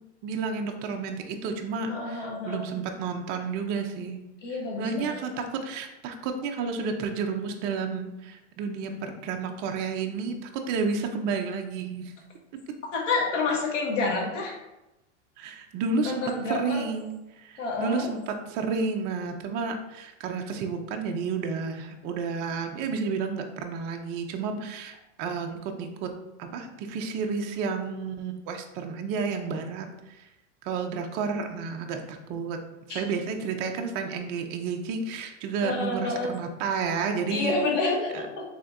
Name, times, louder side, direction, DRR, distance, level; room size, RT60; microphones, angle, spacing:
voice 1, 0.2-4.2 4.8-5.3 5.6-12.1 15.4-26.1 26.4-30.2 30.6-32.6 32.9-37.5 38.1-38.2, right 5 dB, 30° right, 3 dB, 0.4 m, -31 dB
voice 2, 1.9-2.6 4.4-5.4 12.9-14.5 16.0-16.9 17.6-18.1 32.9-33.0 35.6-36.3 37.3-38.4, left 3 dB, 85° left, -1 dB, 1.4 m, -29 dB
4.9 x 3.5 x 2.5 m, 0.97 s
supercardioid pair, 135°, 36 cm